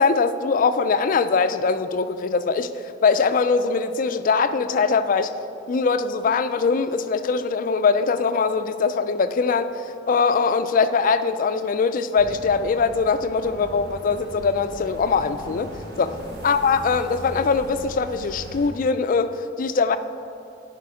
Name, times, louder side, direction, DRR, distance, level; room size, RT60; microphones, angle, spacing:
voice 1, 0.0-2.7 3.0-5.3 5.7-9.7 10.1-15.7 16.0-16.2 16.4-20.0, left 5 dB, 45° left, 11 dB, 0.3 m, -22 dB
sound 1, 12.2-18.7, equal, 55° right, 1.2 m, -39 dB
11.0 x 5.1 x 4.9 m, 2.7 s
head